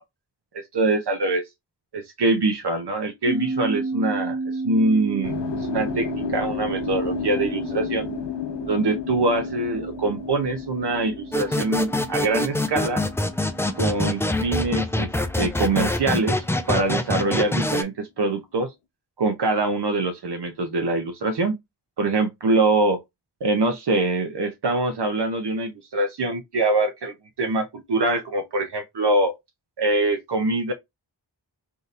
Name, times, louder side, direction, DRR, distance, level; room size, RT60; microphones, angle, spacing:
voice 1, 0.5-1.4 1.9-5.3 5.7-8.1 8.7-13.0 13.8-15.1 15.4-18.7 19.2-21.6 22.0-23.0 23.4-29.4 29.8-30.7, right 2 dB, 65° right, 0.7 m, -24 dB
sound 1, 3.3-16.0, right 3 dB, 30° right, 1.1 m, -33 dB
sound 2, 5.2-15.3 15.6-17.3, left 8 dB, 75° left, 0.5 m, -34 dB
sound 3, 11.3-17.8, left 1 dB, 5° left, 0.3 m, -25 dB
3.7 x 2.7 x 2.4 m
wide cardioid pair, 60°, 44 cm